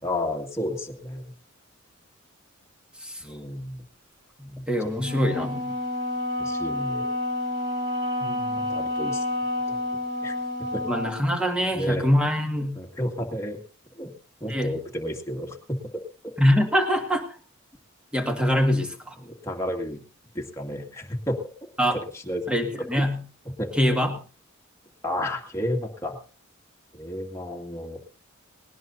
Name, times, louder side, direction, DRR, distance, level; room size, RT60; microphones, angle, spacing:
voice 1, 0.0-1.3 3.2-3.8 4.5-4.7 5.1-5.2 6.4-7.1 8.7-9.2 9.7-9.8 10.2-10.4 10.7-10.9 11.7-12.1 12.8-13.6 14.0-14.1 14.4-16.3 19.2-20.0 20.3-21.4 21.9-22.6 23.0-23.1 23.6-23.7 25.0-26.2 26.9-28.0, left 1 dB, 15° left, 1 dB, 2.1 m, -32 dB
voice 2, 4.4-5.6 8.2-8.7 10.9-12.8 14.5-14.7 16.4-17.2 18.1-19.2 21.8-22.0 22.5-23.2 23.7-24.1, equal, 5° right, 4 dB, 2.0 m, -24 dB
Wind instrument woodwind instrument, 5.0-11.3, left 1 dB, 55° right, 4.3 m, -29 dB
19.5 x 19.0 x 2.7 m, 0.37 s
head